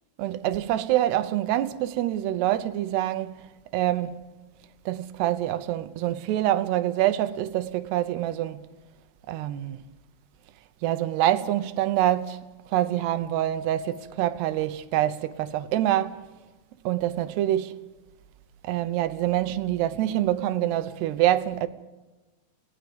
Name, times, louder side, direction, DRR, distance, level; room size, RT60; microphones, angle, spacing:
voice 1, 0.2-3.3 3.7-4.2 4.9-8.6 9.3-9.8 10.8-12.4 12.7-16.2 16.8-17.7 18.6-21.7, right 13 dB, 90° right, 3.1 m, -25 dB
28.5 x 18.5 x 5.2 m
omnidirectional pair, 4.7 m